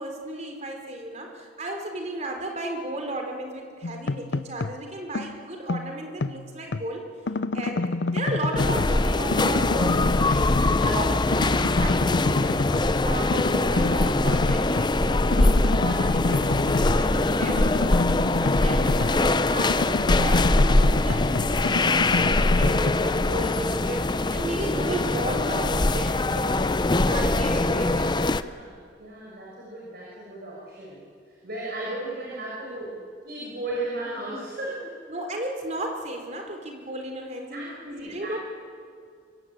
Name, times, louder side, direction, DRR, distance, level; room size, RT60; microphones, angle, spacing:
voice 1, 0.0-7.1 7.5-10.5 10.8-28.1 32.8-33.0 35.1-38.4, right 1 dB, 40° right, 3 dB, 4.0 m, -34 dB
sound 1, 3.8-4.8 5.1-6.9 7.3-9.0 9.3-11.1 11.3-12.9 13.3-14.9 15.3-19.3 19.6-22.9, left 3 dB, 70° left, 0.7 m, -29 dB
sound 2, 8.6-28.4, left 2 dB, 25° left, 0.6 m, -22 dB
voice 2, 27.1-31.0 31.3-35.0 37.5-38.4, right 2 dB, 55° right, -4 dB, 6.0 m, -36 dB
25.5 x 23.5 x 8.9 m, 2.2 s
head